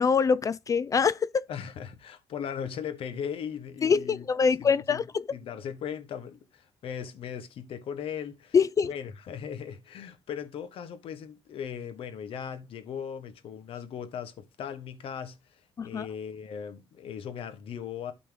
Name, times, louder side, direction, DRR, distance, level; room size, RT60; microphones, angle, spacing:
voice 1, 0.0-1.5 3.8-5.2 8.5-8.9 15.8-16.1, left 6 dB, 35° left, 0.4 m, -24 dB
voice 2, 1.5-5.0 5.3-8.5 8.8-15.4 15.8-18.1, left 8 dB, 70° left, 1.2 m, -38 dB
12.5 x 4.2 x 3.8 m
cardioid pair, 115°, 10 cm